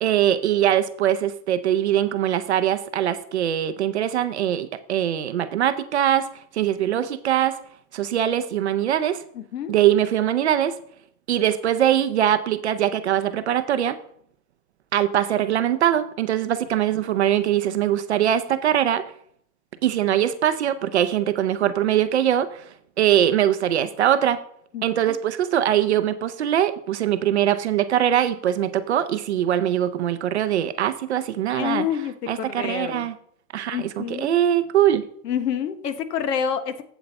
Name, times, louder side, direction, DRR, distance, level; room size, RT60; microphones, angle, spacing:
voice 1, 0.0-6.3 6.5-7.6 7.9-9.2 9.7-10.8 11.3-14.0 14.9-19.0 19.8-22.7 23.0-24.4 24.8-31.8 32.3-33.1 33.5-35.0, right 11 dB, 45° right, 11 dB, 0.5 m, -22 dB
voice 2, 9.3-9.7 24.7-25.2 31.5-33.1 33.7-34.3 35.2-36.8, left 8 dB, 70° left, 12 dB, 1.2 m, -28 dB
8.1 x 7.6 x 4.1 m, 0.64 s
supercardioid pair, 170°, 50 cm